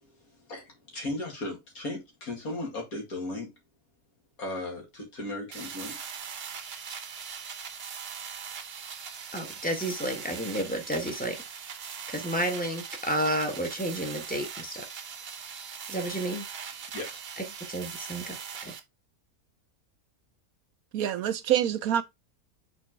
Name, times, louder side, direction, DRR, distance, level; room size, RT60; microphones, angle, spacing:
voice 1, 0.0-3.5 4.4-6.0 16.9-17.2, left 2 dB, 65° left, 2.6 m, -36 dB
sound 1, 5.5-18.8, right 7 dB, 45° right, 0.9 m, -40 dB
voice 2, 9.3-11.4 12.1-14.8 15.9-16.5 17.4-18.4 18.6-18.7, right 1 dB, 5° left, 1.3 m, -31 dB
voice 3, 20.9-22.0, right 10 dB, 70° right, 1.1 m, -26 dB
6.0 x 4.6 x 3.6 m
omnidirectional pair, 1.7 m